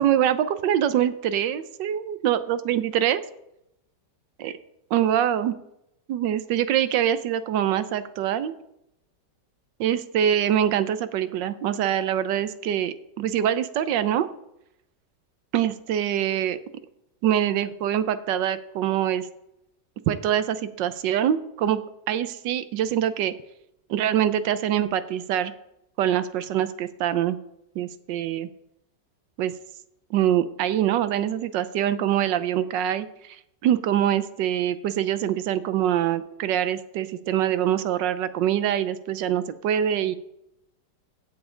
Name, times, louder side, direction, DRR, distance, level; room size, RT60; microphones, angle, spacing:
voice 1, 0.0-3.2 4.4-4.5 4.9-5.5 6.1-8.5 9.8-14.3 15.5-16.6 17.2-19.3 20.1-21.8 22.1-23.3 23.9-25.5 26.0-27.4 27.7-28.5 29.4-29.5 30.1-33.4 33.6-40.1, right 10 dB, 90° right, 13 dB, 1.4 m, -24 dB
16.0 x 7.1 x 3.8 m, 0.81 s
omnidirectional pair, 1.9 m